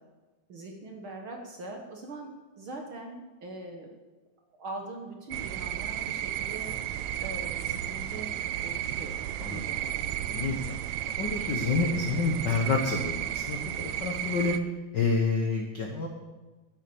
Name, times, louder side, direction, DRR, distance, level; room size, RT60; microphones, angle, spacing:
voice 1, 0.5-3.9 4.5-6.8 7.2-8.4 8.6-9.2 9.5-10.1, right 2 dB, 55° right, 2 dB, 1.5 m, -42 dB
sound 1, 5.3-14.6, right 11 dB, 90° right, 1.6 m, -33 dB
voice 2, 10.3-10.8 11.2-14.6 14.9-16.1, left 4 dB, 90° left, 3 dB, 0.9 m, -28 dB
11.0 x 11.0 x 7.0 m, 1.2 s
omnidirectional pair, 3.9 m